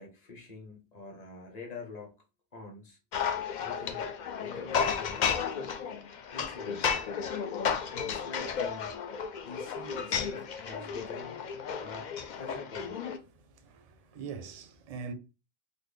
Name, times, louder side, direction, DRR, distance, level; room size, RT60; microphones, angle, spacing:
voice 1, 0.0-2.2 2.5-3.0 3.6-4.1 4.4-5.2 6.3-7.0 8.0-9.0 9.4-11.4 11.8-13.0, left 3 dB, 40° left, 0.9 m, -45 dB
sound 1, 3.1-13.2, left 7 dB, 60° left, 0.5 m, -33 dB
voice 2, 13.4-15.1, right 5 dB, 45° right, 0.5 m, -42 dB
4.0 x 2.1 x 3.3 m
omnidirectional pair, 1.1 m